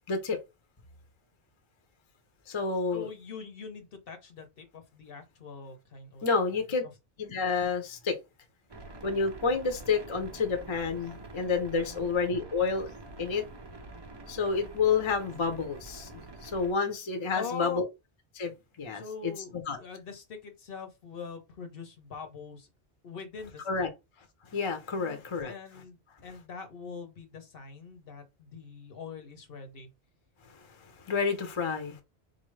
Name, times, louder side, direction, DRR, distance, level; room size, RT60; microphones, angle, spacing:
voice 1, 0.1-0.4 2.5-3.1 6.2-6.8 7.2-8.2 9.0-12.9 13.2-13.4 14.3-16.1 16.4-17.8 18.3-18.5 18.8-19.3 19.7-19.8 23.7-23.9 24.5-25.5 30.5-32.0, left 5 dB, 35° left, 0.6 m, -29 dB
voice 2, 2.9-6.3 11.9-12.1 17.3-17.8 18.9-22.7 23.0-23.9 25.0-29.9, left 5 dB, 60° left, 0.9 m, -42 dB
sound 1, 8.7-16.7, right 2 dB, 35° right, 0.4 m, -46 dB
4.0 x 2.6 x 3.1 m
omnidirectional pair, 1.1 m